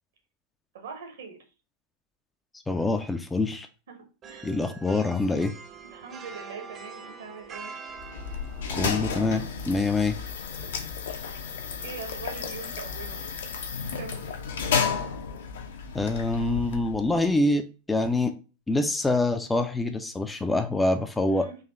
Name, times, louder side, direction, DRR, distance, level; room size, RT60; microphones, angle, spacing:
voice 1, 0.7-1.4 3.9-4.5 5.8-7.7 11.2-13.2 13.9-14.3 21.3-21.6, right 5 dB, 60° right, 4 dB, 1.2 m, -42 dB
voice 2, 2.7-3.7 4.4-5.5 8.7-10.2 15.9-18.3 18.7-21.5, left 2 dB, 10° left, 7 dB, 0.4 m, -25 dB
sound 1, 4.2-14.5, right 5 dB, 30° right, 0.8 m, -47 dB
sound 2, 8.0-17.3, left 6 dB, 60° left, 0.7 m, -32 dB
4.0 x 3.0 x 4.2 m, 0.34 s
figure-of-eight pair, 90°, 0 cm